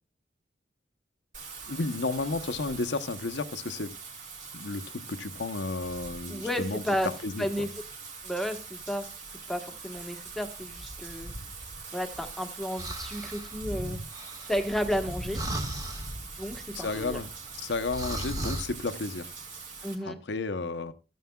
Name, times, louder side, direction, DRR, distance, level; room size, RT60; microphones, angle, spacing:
Wind / Rain, 1.3-20.0, right 3 dB, 45° right, 2.5 m, -41 dB
voice 1, 1.7-3.9 4.5-6.8 7.2-7.5 16.7-17.3 17.6-19.3 20.0-20.9, left 3 dB, 80° left, 0.8 m, -32 dB
voice 2, 6.3-7.1 7.4-7.7 8.2-9.1 9.5-11.3 11.9-14.0 14.5-15.4 16.4-17.2 19.8-20.2, equal, ahead, 1.2 m, -32 dB
sound 1, 12.8-13.6 14.1-15.0 15.3-16.2 16.7-18.7, right 1 dB, 20° right, 1.6 m, -39 dB
14.0 x 9.3 x 2.3 m
head